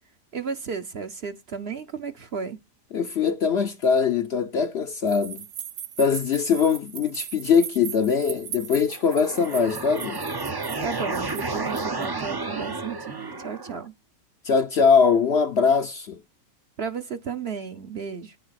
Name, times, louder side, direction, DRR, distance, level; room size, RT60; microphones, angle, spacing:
voice 1, 0.3-2.6 10.8-13.9 16.8-18.4, right 6 dB, 50° right, 0.9 m, -33 dB
voice 2, 2.9-5.5 6.0-10.2 14.4-16.2, left 6 dB, 55° left, 0.8 m, -22 dB
sound 1, 5.1-12.0, right 9 dB, 70° right, 1.2 m, -39 dB
sound 2, 8.9-13.9, right 3 dB, 30° right, 0.4 m, -31 dB
9.7 x 5.4 x 5.8 m
omnidirectional pair, 1.6 m